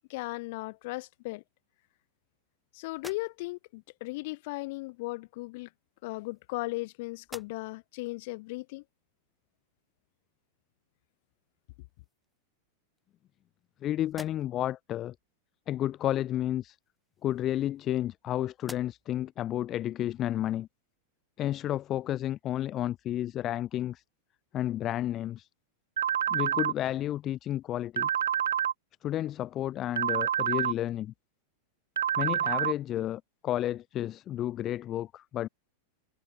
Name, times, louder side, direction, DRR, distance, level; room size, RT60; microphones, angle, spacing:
voice 1, 0.1-1.4 2.7-5.7 6.0-8.8, left 23 dB, 50° left, 1.0 m, -37 dB
sound 1, 2.9-3.7 4.9-5.0 6.0-6.8 7.2-7.9 8.4-8.5 11.2-11.3 11.7-12.4 13.0-13.7 14.0-14.8 16.8-18.2 18.6-19.2, left 1 dB, 5° left, 1.1 m, -51 dB
voice 2, 13.8-15.1 15.7-16.8 17.2-20.7 21.4-24.0 24.5-25.5 26.3-28.1 29.0-31.1 32.2-35.5, left 12 dB, 30° left, 0.3 m, -31 dB
sound 2, 26.0-26.7 28.0-28.7 30.0-30.7 32.0-32.7, right 10 dB, 65° right, 0.5 m, -27 dB
figure-of-eight pair, 90°, 0 cm